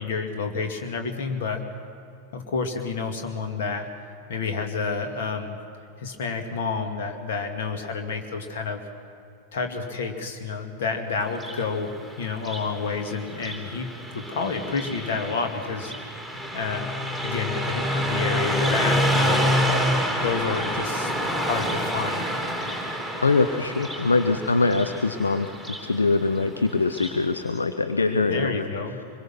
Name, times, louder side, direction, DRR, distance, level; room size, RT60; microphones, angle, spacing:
voice 1, 0.0-1.6 2.3-3.9 4.3-5.6 6.0-8.8 9.5-11.9 12.2-15.9 16.5-16.9 17.2-19.5 20.2-22.4 28.2-29.0, left 4 dB, 55° left, 5 dB, 2.4 m, -29 dB
Car passing by, 11.2-27.2, equal, 10° left, 3.7 m, -28 dB
voice 2, 23.2-25.5 25.8-28.7, left 3 dB, 75° left, 8 dB, 0.8 m, -23 dB
25.0 x 22.0 x 6.1 m, 2.6 s
figure-of-eight pair, 90°, 0 cm